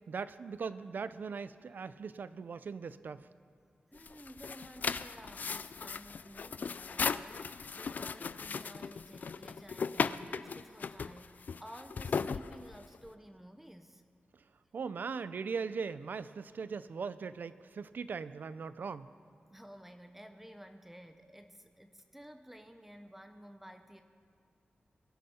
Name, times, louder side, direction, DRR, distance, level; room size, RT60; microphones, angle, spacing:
voice 1, 0.1-3.3 14.7-19.1, right 5 dB, 65° right, 14 dB, 0.5 m, -39 dB
sound 1, 3.9-13.1, left 5 dB, 55° left, 0.3 m, -37 dB
voice 2, 3.9-14.0 19.5-24.0, equal, 5° right, 7 dB, 0.6 m, -53 dB
21.5 x 12.0 x 4.3 m, 2.4 s
wide cardioid pair, 165°, 3 cm